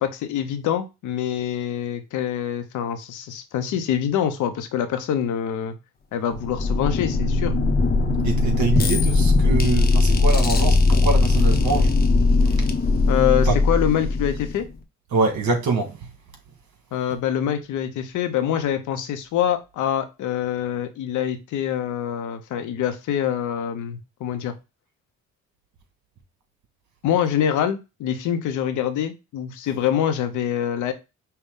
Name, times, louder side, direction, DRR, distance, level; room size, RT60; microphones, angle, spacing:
voice 1, 0.0-5.8 6.1-7.5 13.1-14.6 16.9-24.5 27.0-30.9, left 9 dB, 80° left, 0.8 m, -25 dB
sound 1, 6.3-14.8, left 3 dB, 30° left, 0.8 m, -19 dB
voice 2, 8.2-11.9 13.4-13.6 15.1-16.0, right 4 dB, 70° right, 1.7 m, -24 dB
5.5 x 2.3 x 3.6 m
cardioid pair, 90°, 30 cm